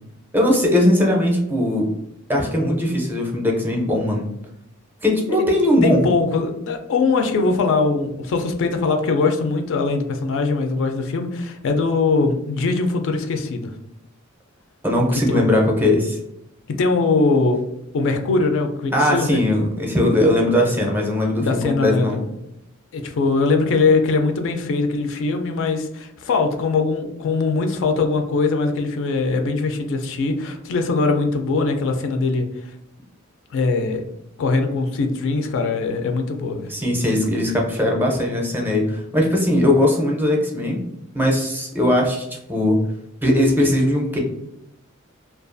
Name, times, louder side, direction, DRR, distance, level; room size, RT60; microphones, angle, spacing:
voice 1, 0.3-1.9 2.3-4.3 5.0-6.0 14.8-16.2 18.9-22.2 36.7-40.8 41.1-42.8 43.2-44.2, left 1 dB, 10° right, 0 dB, 0.5 m, -19 dB
voice 2, 5.8-13.7 15.3-15.4 16.7-17.6 17.9-19.4 21.4-22.2 22.9-32.5 33.5-34.0 34.4-36.7, left 3 dB, 65° left, 5 dB, 0.3 m, -21 dB
2.3 x 2.2 x 2.5 m, 0.82 s
head